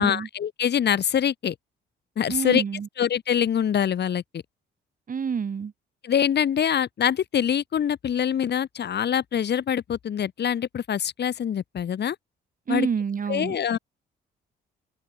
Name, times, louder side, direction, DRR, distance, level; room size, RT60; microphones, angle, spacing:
voice 1, 0.0-1.6 2.2-2.6 3.0-4.2 6.0-12.2 12.7-12.9 13.3-13.8, left 9 dB, 60° left, 3.7 m, -24 dB
voice 2, 2.3-2.9 5.1-5.7 12.7-13.6, right 6 dB, 45° right, 3.6 m, -28 dB
open air
cardioid pair, 90°, 20 cm